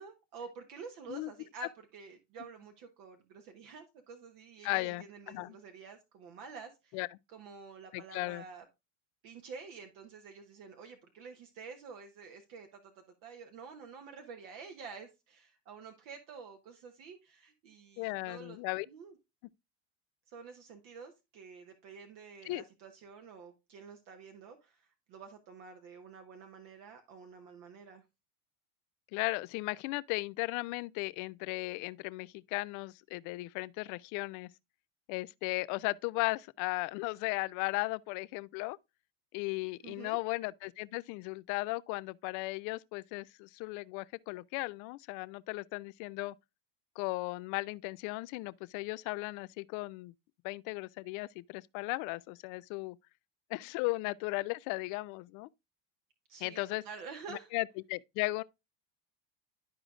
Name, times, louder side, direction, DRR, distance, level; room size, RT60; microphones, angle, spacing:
voice 1, 0.0-7.0 7.3-8.6 9.2-12.9 13.2-18.6 18.9-19.1 20.3-28.0 39.8-40.2 56.3-57.5, right 5 dB, 60° right, 1.3 m, -49 dB
voice 2, 4.6-5.6 6.9-7.1 7.9-8.4 18.0-18.9 22.5-22.6 29.1-34.5 35.1-38.8 39.3-46.3 47.0-50.1 50.4-53.0 53.5-55.5 56.4-56.8 57.3-58.4, left 23 dB, 55° left, 0.5 m, -36 dB
11.5 x 4.8 x 2.4 m
hypercardioid pair, 90°, 38 cm